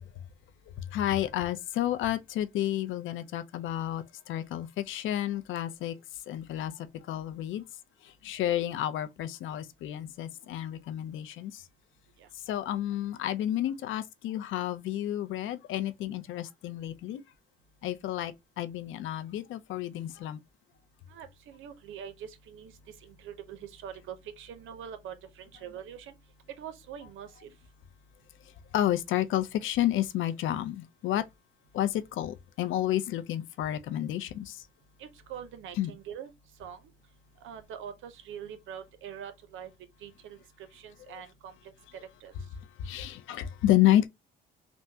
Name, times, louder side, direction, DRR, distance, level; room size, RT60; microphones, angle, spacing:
voice 1, 0.9-5.9 6.3-6.7 7.1-7.6 8.2-11.6 12.5-17.2 17.8-20.4 28.7-31.2 31.7-34.6 35.8-35.9 42.8-44.1, left 12 dB, 80° left, 0.5 m, -30 dB
voice 2, 21.1-26.1 26.6-27.5 35.0-36.3 36.6-36.8 37.4-39.7 40.0-41.7 42.2-42.3, right 8 dB, 80° right, 0.6 m, -44 dB
3.5 x 2.1 x 2.7 m
cardioid pair, 90°, 20 cm